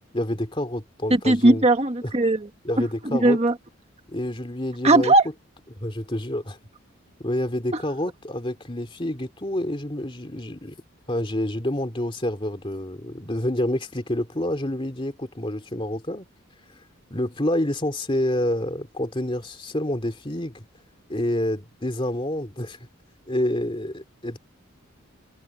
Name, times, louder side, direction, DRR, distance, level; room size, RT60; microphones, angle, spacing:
voice 1, 0.1-1.6 2.0-2.1 2.6-3.4 4.1-5.1 5.7-6.6 7.2-10.7 11.1-16.2 17.1-20.6 21.1-22.8 23.3-24.4, left 1 dB, 25° left, 2.6 m, -28 dB
voice 2, 1.1-2.5 2.8-3.5 4.8-5.3, right 2 dB, 30° right, 1.5 m, -19 dB
head